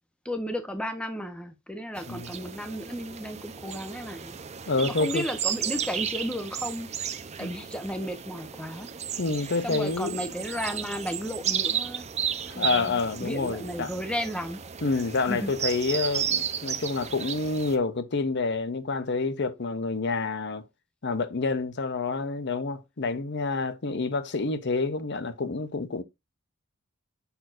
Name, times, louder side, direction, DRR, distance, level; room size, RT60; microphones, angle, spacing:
voice 1, 0.2-4.4 4.8-6.9 7.4-8.9 9.6-12.1 12.5-14.6 15.3-15.5, equal, 5° left, 0.9 m, -34 dB
sound 1, 2.0-17.8, right 8 dB, 30° right, 0.6 m, -34 dB
voice 2, 4.7-5.3 7.4-7.5 9.2-10.2 12.5-13.9 14.8-20.6 21.0-26.0, left 3 dB, 55° left, 0.8 m, -28 dB
6.9 x 6.0 x 2.5 m
head